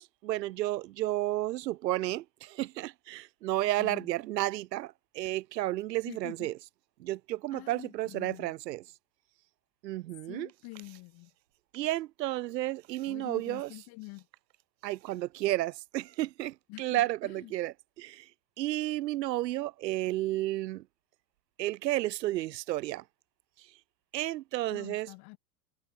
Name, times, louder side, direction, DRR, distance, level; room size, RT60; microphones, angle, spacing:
voice 1, 0.0-6.5 7.0-8.8 9.8-10.5 11.7-13.7 14.8-18.3 18.6-20.8 21.6-23.0 23.6-23.7 24.1-25.1, right 16 dB, 80° right, 1.2 m, -32 dB
voice 2, 3.8-4.1 6.0-6.5 7.5-8.5 10.3-11.3 13.0-14.3 16.7-17.5 24.7-25.4, left 25 dB, 50° left, 2.8 m, -46 dB
hypercardioid pair, 115°, 49 cm